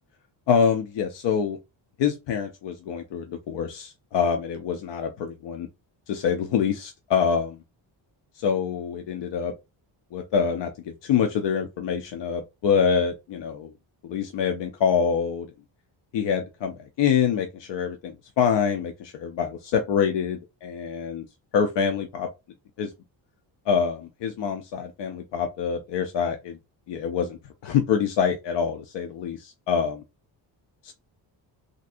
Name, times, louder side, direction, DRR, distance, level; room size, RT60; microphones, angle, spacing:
voice 1, 0.5-1.6 2.0-5.7 6.1-7.6 8.4-9.5 10.1-13.7 14.0-15.5 16.1-21.2 21.5-22.3 22.8-22.9 23.7-26.6 26.9-27.4 27.6-30.0 30.8-30.9, left 7 dB, 70° left, 0.6 m, -25 dB
3.3 x 2.6 x 2.5 m
cardioid pair, 140°, 45 cm